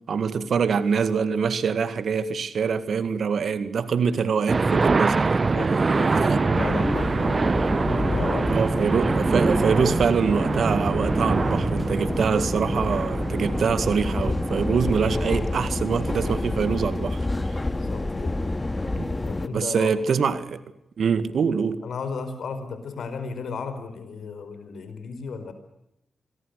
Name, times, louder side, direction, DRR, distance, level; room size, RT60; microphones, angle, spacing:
voice 1, 0.1-5.4 6.3-6.4 8.5-17.2 17.5-17.6 19.0-19.1 19.5-20.6 21.0-21.8, right 6 dB, 70° right, 2.0 m, -24 dB
sound 1, 4.5-15.2, right 4 dB, 45° right, 0.9 m, -24 dB
voice 2, 5.3-8.5 17.6-18.4 19.3-19.9 21.8-25.5, left 5 dB, 75° left, 4.5 m, -35 dB
sound 2, 6.5-19.5, left 2 dB, 25° left, 2.2 m, -28 dB
27.5 x 21.5 x 6.6 m
supercardioid pair, 40°, 0 cm